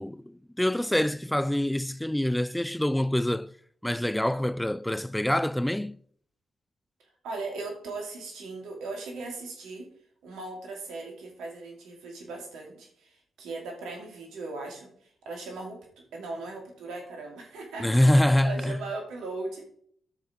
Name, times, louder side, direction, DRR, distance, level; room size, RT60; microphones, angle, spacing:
voice 1, 0.0-3.5 3.8-6.0 17.8-18.8, left 1 dB, 10° left, 0.3 m, -25 dB
voice 2, 7.0-9.9 10.2-15.8 16.1-19.6, right 3 dB, 80° right, 2.6 m, -38 dB
9.8 x 6.7 x 5.0 m
hypercardioid pair, 40°, 0 cm